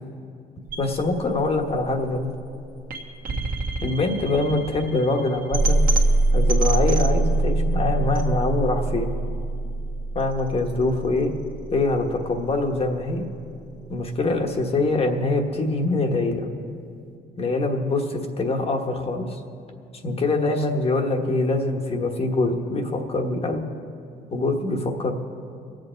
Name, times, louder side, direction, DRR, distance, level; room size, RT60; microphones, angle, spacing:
sound 1, 0.7-12.7, right 2 dB, 55° right, 1.6 m, -24 dB
voice 1, 0.8-2.3 3.8-5.8 6.3-9.1 10.1-11.3 11.7-13.3 13.9-16.5 17.4-19.4 20.0-23.7 24.3-25.1, left 2 dB, 35° left, 4 dB, 1.4 m, -24 dB
23.5 x 7.8 x 4.5 m, 2.5 s
cardioid pair, 110°, 17 cm